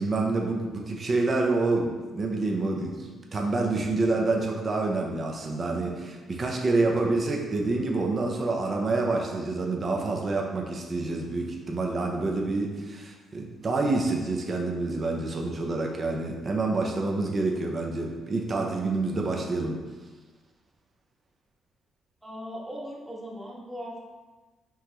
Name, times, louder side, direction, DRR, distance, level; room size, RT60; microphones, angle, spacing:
voice 1, 0.0-19.8, right 3 dB, 40° right, 1 dB, 0.7 m, -27 dB
voice 2, 22.2-24.1, equal, 10° right, -4 dB, 1.2 m, -39 dB
5.5 x 3.1 x 3.0 m, 1.3 s
cardioid pair, 90°, 0 cm